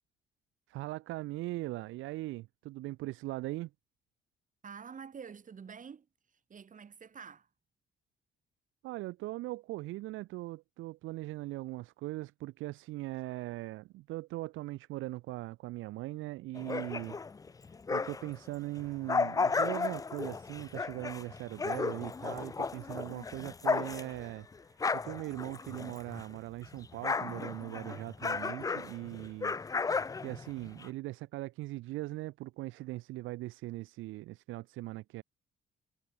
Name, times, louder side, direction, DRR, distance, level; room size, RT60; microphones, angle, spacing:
voice 1, 0.7-3.7 8.8-17.2 17.9-24.5 24.9-29.6 30.2-35.2, right 18 dB, 85° right, 0.5 m, -40 dB
voice 2, 4.6-6.1 6.5-7.5, right 6 dB, 40° right, 2.0 m, -47 dB
sound 1, 16.5-18.4 18.8-26.4 26.6-30.9, left 4 dB, 20° left, 0.4 m, -34 dB
cardioid pair, 90°, 20 cm